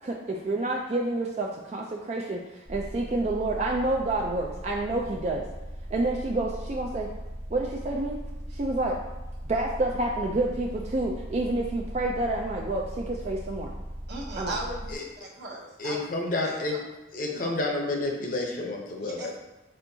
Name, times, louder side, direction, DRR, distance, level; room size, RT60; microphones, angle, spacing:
voice 1, 0.0-5.4 5.9-7.1 7.5-8.2 8.5-9.0 9.5-13.7 14.4-14.6, right 2 dB, 35° right, -1 dB, 0.3 m, -29 dB
sound 1, 2.6-14.9, equal, 85° right, 1.4 m, -39 dB
voice 2, 14.1-16.0 16.4-16.6 19.0-19.4, right 2 dB, 60° right, -2 dB, 0.9 m, -37 dB
voice 3, 15.8-16.7 17.1-19.4, left 2 dB, 45° left, 1 dB, 0.7 m, -30 dB
4.4 x 4.3 x 2.7 m, 1.0 s
head